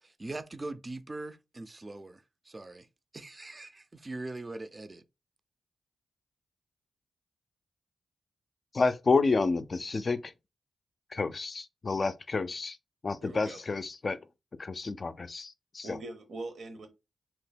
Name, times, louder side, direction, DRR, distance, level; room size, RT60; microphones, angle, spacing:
voice 1, 0.0-2.9 3.1-5.0, right 2 dB, 35° right, 0.4 m, -41 dB
voice 2, 8.7-10.3 11.1-12.8 13.0-14.2 14.6-16.0, left 4 dB, 50° left, 0.3 m, -29 dB
voice 3, 13.2-13.6 15.8-16.9, right 2 dB, 80° right, 0.8 m, -42 dB
2.9 x 2.1 x 3.3 m
cardioid pair, 55°, 0 cm